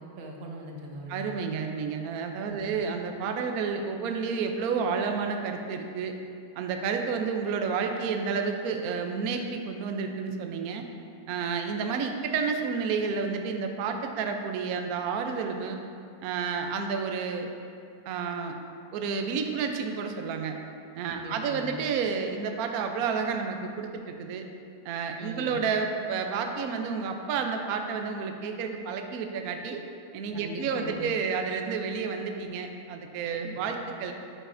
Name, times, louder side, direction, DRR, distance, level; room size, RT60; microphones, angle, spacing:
voice 1, 0.0-1.4 2.4-2.7 21.1-21.8 25.2-25.6 30.3-31.1 33.4-33.6, right 1 dB, 85° right, 0 dB, 1.7 m, -41 dB
voice 2, 1.1-6.1 6.6-10.8 11.3-15.8 16.2-17.5 18.1-18.5 18.9-20.6 20.9-24.5 24.8-29.8 30.1-34.1, right 5 dB, 65° right, 4 dB, 0.9 m, -30 dB
9.0 x 8.9 x 2.6 m, 2.4 s
omnidirectional pair, 2.1 m